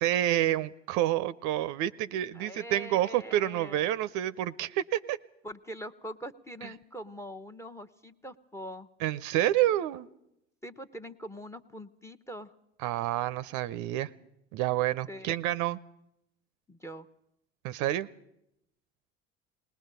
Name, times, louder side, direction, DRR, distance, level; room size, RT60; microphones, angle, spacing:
voice 1, 0.0-5.2 9.0-10.1 12.8-14.1 14.5-15.8 17.6-18.1, right 13 dB, 60° right, 16 dB, 0.7 m, -28 dB
voice 2, 2.3-3.9 5.4-8.9 10.6-12.5 15.1-15.3 16.7-17.1, equal, 10° left, 13 dB, 1.0 m, -43 dB
19.5 x 19.5 x 6.8 m, 0.81 s
hypercardioid pair, 65°, 33 cm